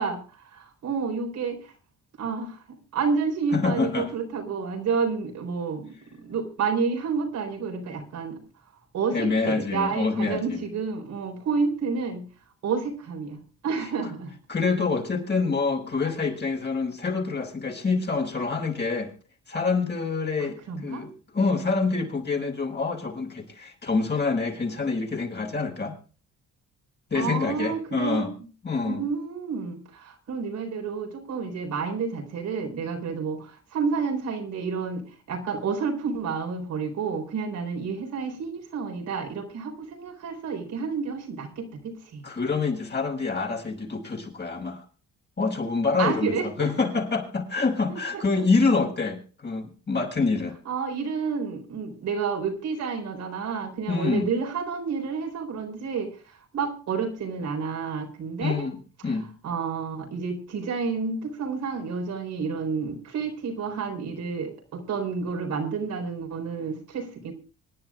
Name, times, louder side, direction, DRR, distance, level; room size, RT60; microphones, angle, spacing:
voice 1, 0.0-1.7 2.2-5.9 6.2-8.4 8.9-12.3 12.6-14.3 20.7-21.0 27.1-28.3 28.8-42.2 46.0-46.7 47.9-48.2 50.7-56.1 56.5-58.7 59.4-67.3, right 5 dB, 75° right, 2 dB, 4.5 m, -30 dB
voice 2, 3.5-4.1 9.1-10.6 13.8-13.9 14.5-19.1 19.5-26.0 27.1-28.3 28.6-29.0 42.2-44.8 45.4-50.6 53.9-54.3 58.4-59.3, left 4 dB, 35° left, 1 dB, 5.5 m, -26 dB
26.0 x 10.5 x 2.5 m, 0.37 s
cardioid pair, 90°, 30 cm